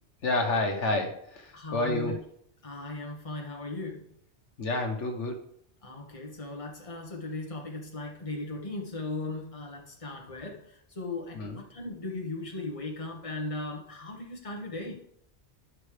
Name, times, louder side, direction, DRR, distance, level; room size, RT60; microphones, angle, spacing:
voice 1, 0.2-2.2 4.6-5.3 11.3-11.6, left 2 dB, 85° left, 3 dB, 1.5 m, -29 dB
voice 2, 1.5-2.2 2.6-4.1 5.8-15.0, left 2 dB, 30° left, 1 dB, 1.4 m, -37 dB
11.5 x 5.3 x 3.3 m, 0.69 s
omnidirectional pair, 1.2 m